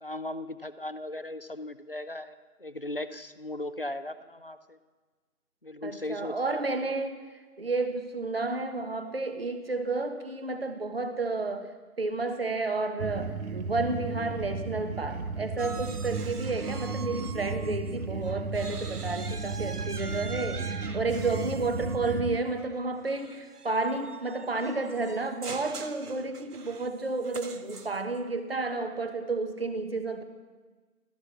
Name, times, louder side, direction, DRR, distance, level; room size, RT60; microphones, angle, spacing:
voice 1, 0.0-4.8 5.6-6.6, left 1 dB, 40° left, 12 dB, 0.5 m, -37 dB
voice 2, 5.8-11.7 12.0-30.2, right 3 dB, 40° right, 8 dB, 1.3 m, -31 dB
sound 1, 13.0-22.4, right 4 dB, 65° right, 1.0 m, -34 dB
sound 2, 15.6-18.0 18.2-28.2, right 4 dB, 85° right, 1.5 m, -44 dB
16.0 x 14.0 x 6.1 m, 1.3 s
figure-of-eight pair, 175°, 45 cm